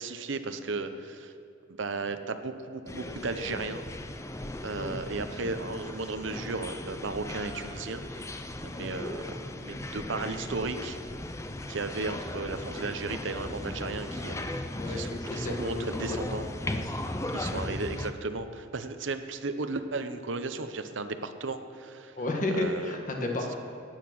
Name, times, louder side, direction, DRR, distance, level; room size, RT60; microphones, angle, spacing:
voice 1, 0.0-1.3 1.8-3.9 4.6-11.0 11.7-16.5 17.3-22.2 22.5-23.0, right 3 dB, 70° right, 9 dB, 0.8 m, -35 dB
sound 1, 2.9-18.1, left 1 dB, 15° left, 0.5 m, -37 dB
voice 2, 14.7-16.9 17.5-17.6 22.2-23.5, left 2 dB, 40° left, 2 dB, 1.6 m, -33 dB
16.0 x 9.0 x 6.1 m, 2.4 s
head